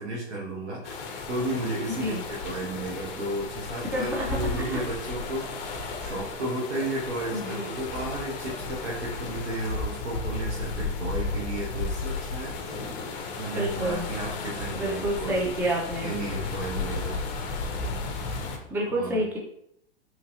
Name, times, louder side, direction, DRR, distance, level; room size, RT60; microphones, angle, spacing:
voice 1, 0.0-12.6 13.4-15.5 16.0-17.2 18.9-19.2, right 1 dB, 90° right, -4 dB, 0.8 m, -33 dB
sound 1, 0.8-18.6, left 3 dB, 40° left, 0.6 m, -34 dB
voice 2, 1.9-2.2 3.9-4.4 4.7-4.8 7.3-7.8 13.6-14.0 14.7-16.1 18.7-19.4, right 1 dB, 5° right, -2 dB, 0.4 m, -29 dB
3.0 x 2.5 x 2.8 m, 0.73 s
hypercardioid pair, 110°, 33 cm